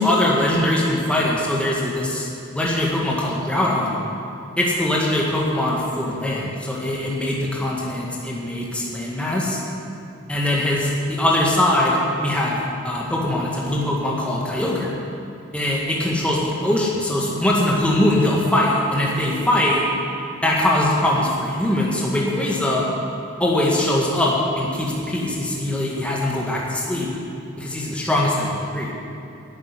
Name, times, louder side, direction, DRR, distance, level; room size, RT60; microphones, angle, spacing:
voice 1, 0.0-2.3 2.6-4.0 4.6-9.6 10.3-15.0 15.5-19.8 20.4-22.9 23.4-27.1 27.6-28.9, left 1 dB, 5° left, -4 dB, 1.8 m, -21 dB
11.5 x 9.0 x 10.0 m, 2.8 s
head